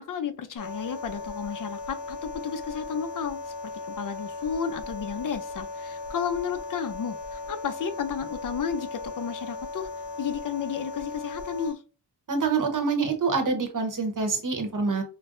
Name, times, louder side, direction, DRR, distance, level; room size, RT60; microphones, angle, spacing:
voice 1, 0.0-3.4 3.9-9.9 10.2-11.8, left 7 dB, 50° left, 0.6 m, -32 dB
sound 1, 0.6-11.7, left 3 dB, 80° left, 1.0 m, -37 dB
voice 2, 12.3-15.0, right 4 dB, 45° right, 0.9 m, -26 dB
5.1 x 2.1 x 2.6 m
wide cardioid pair, 125°, 43 cm